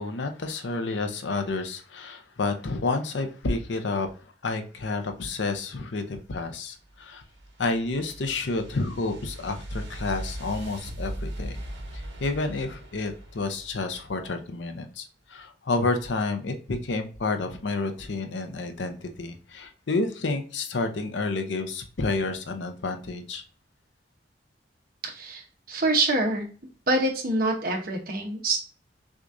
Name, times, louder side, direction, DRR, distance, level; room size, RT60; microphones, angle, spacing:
voice 1, 0.0-4.1 4.4-7.2 7.6-11.6 12.2-23.4, left 3 dB, 75° left, 7 dB, 0.6 m, -30 dB
sound 1, 6.8-14.1, right 1 dB, 75° right, 1.0 m, -39 dB
voice 2, 25.1-25.4 25.7-26.5 26.9-28.6, right 2 dB, 50° right, 2 dB, 1.0 m, -25 dB
6.1 x 2.4 x 2.6 m, 0.39 s
head